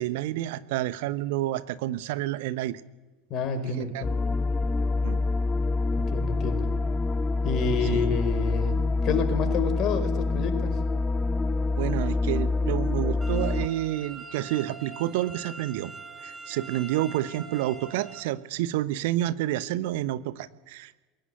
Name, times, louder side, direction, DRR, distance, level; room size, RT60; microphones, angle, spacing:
voice 1, 0.0-2.8 3.8-4.0 5.0-5.2 7.9-8.0 11.8-15.9 16.2-21.0, right 14 dB, 60° right, 16 dB, 1.0 m, -29 dB
voice 2, 3.3-4.1 6.0-6.7 7.4-10.8, left 5 dB, 45° left, 7 dB, 4.9 m, -29 dB
sound 1, 4.0-13.7, left 3 dB, 20° left, 1.1 m, -26 dB
sound 2, 13.2-18.2, right 5 dB, 20° right, 6.4 m, -43 dB
22.5 x 17.5 x 9.3 m, 1.2 s
figure-of-eight pair, 70°, 0 cm